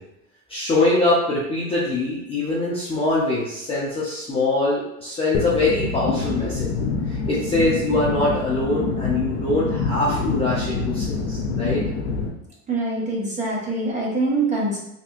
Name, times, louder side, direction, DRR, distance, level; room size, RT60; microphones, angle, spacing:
voice 1, 0.5-6.7 7.1-11.8, left 2 dB, 15° left, -7 dB, 0.5 m, -23 dB
sound 1, 5.3-12.3, left 4 dB, 70° left, 0.8 m, -26 dB
voice 2, 12.7-14.8, right 2 dB, 15° right, -4 dB, 1.0 m, -24 dB
3.4 x 2.8 x 2.4 m, 0.86 s
supercardioid pair, 125°, 42 cm